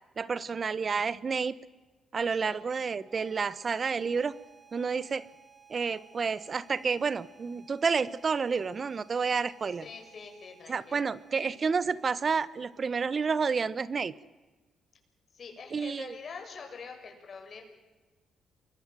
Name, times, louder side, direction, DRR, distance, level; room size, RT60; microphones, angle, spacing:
voice 1, 0.2-1.6 2.1-4.4 4.7-5.3 5.7-9.8 10.7-14.1 15.7-16.2, right 5 dB, 40° right, 17 dB, 1.1 m, -30 dB
voice 2, 2.3-2.6 9.7-11.0 15.3-17.6, left 5 dB, 45° left, 3 dB, 7.0 m, -45 dB
sound 1, 2.8-13.9, right 6 dB, 15° right, 4.3 m, -59 dB
28.5 x 22.5 x 7.6 m, 1.2 s
cardioid pair, 90°, 0 cm